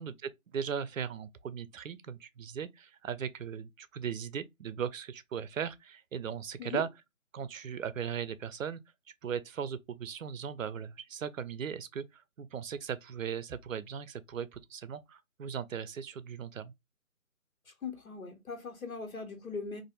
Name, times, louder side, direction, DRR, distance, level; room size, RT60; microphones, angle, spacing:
voice 1, 0.0-6.9 7.3-8.8 9.2-16.7, right 7 dB, 70° right, 0.5 m, -38 dB
voice 2, 17.6-19.8, left 4 dB, 80° left, 1.2 m, -40 dB
2.5 x 2.4 x 2.9 m
figure-of-eight pair, 155°, 41 cm